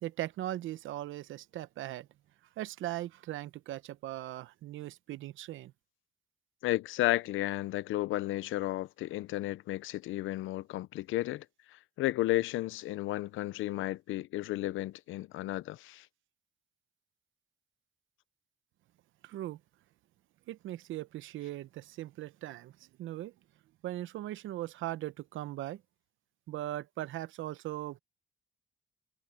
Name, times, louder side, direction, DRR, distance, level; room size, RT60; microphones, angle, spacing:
voice 1, 0.0-2.1 2.6-5.7 19.2-19.6 20.5-23.3 23.8-25.8 26.5-28.0, right 14 dB, 80° right, 0.8 m, -39 dB
voice 2, 6.6-16.1, left 16 dB, 85° left, 0.6 m, -33 dB
cardioid pair, 90°, 20 cm